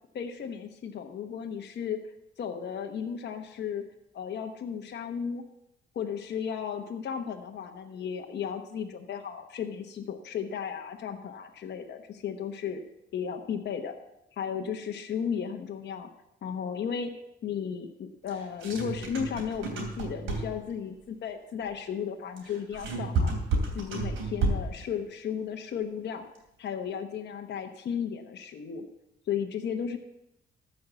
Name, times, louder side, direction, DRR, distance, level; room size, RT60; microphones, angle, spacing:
voice 1, 0.1-2.0 2.4-3.8 4.1-5.4 5.9-12.8 13.1-13.9 14.4-16.1 16.4-17.1 17.4-23.3 23.7-26.3 26.6-28.8 29.3-30.0, left 7 dB, 60° left, 3 dB, 1.1 m, -34 dB
sound 1, 18.3-20.7 22.4-24.8, right 3 dB, 85° right, 3.1 m, -30 dB
14.0 x 5.6 x 7.1 m, 0.87 s
cardioid pair, 90°, 20 cm